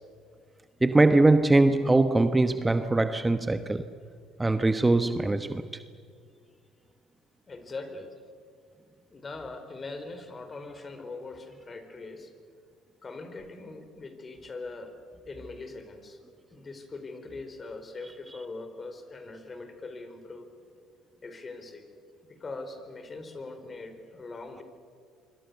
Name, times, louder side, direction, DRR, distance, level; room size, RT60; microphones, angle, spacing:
voice 1, 0.8-3.9 4.4-5.6 18.3-18.4, right 2 dB, 15° right, 1.1 m, -22 dB
voice 2, 7.5-8.1 9.1-12.3 13.0-14.9 15.3-16.2 16.5-20.5 21.2-21.9 22.3-24.6, left 3 dB, 35° left, 4.5 m, -41 dB
25.5 x 25.0 x 7.0 m
hypercardioid pair, 65°, 0 cm